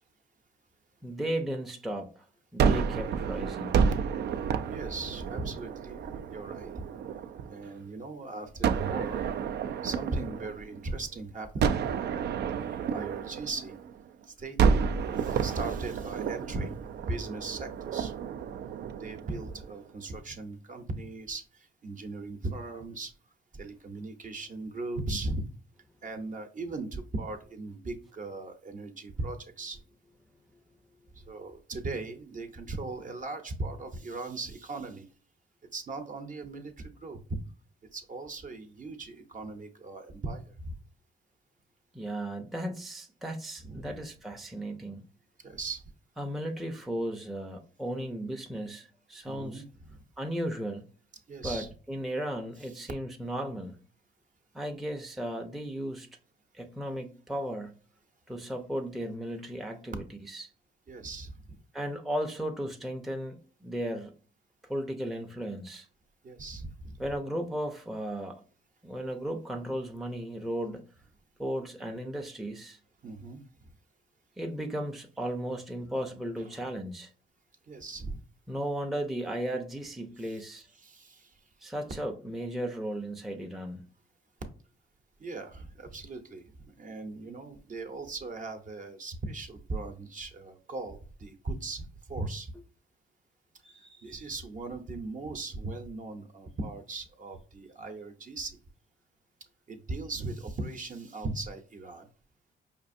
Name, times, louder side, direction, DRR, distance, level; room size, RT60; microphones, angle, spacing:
voice 1, 1.0-2.2 2.5-3.8 41.9-45.0 46.2-49.6 50.2-50.9 51.4-53.8 54.5-56.1 56.5-57.8 58.3-60.5 61.7-64.1 64.6-65.9 67.0-68.4 68.8-70.8 71.4-72.8 74.4-77.1 78.5-80.7 81.6-83.8 93.6-94.2, right 1 dB, ahead, 0.5 m, -35 dB
Gunshot gunfire, 2.6-7.7 8.6-11.0 11.6-14.1 14.6-19.8, right 6 dB, 55° right, 0.4 m, -30 dB
voice 2, 4.7-6.8 7.5-9.3 9.8-11.9 12.5-13.8 14.3-16.8 17.0-18.1 19.0-23.1 23.5-25.5 26.0-29.8 31.1-35.1 35.7-37.4 37.9-40.7 43.6-44.0 45.4-45.8 49.3-50.0 51.3-51.7 60.9-61.6 66.2-67.0 73.0-73.7 77.7-78.2 80.2-80.4 80.7-81.4 85.2-86.4 86.8-92.5 94.0-98.6 99.7-102.1, right 3 dB, 40° right, 0.8 m, -38 dB
5.1 x 2.5 x 2.5 m
cardioid pair, 90°, 20 cm